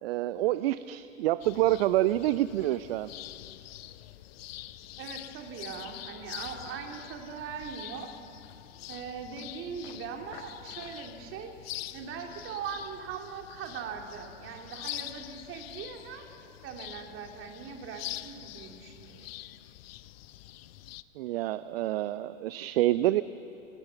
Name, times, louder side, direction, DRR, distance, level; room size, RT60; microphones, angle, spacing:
voice 1, 0.0-3.1 21.2-23.2, right 15 dB, 50° right, 15 dB, 0.6 m, -27 dB
sound 1, 1.4-21.0, left 15 dB, 50° left, 0.8 m, -45 dB
voice 2, 5.0-8.1 8.9-11.5 11.9-19.3, right 6 dB, 35° right, 3 dB, 2.8 m, -41 dB
26.5 x 19.5 x 7.0 m, 2.9 s
figure-of-eight pair, 100°, 39 cm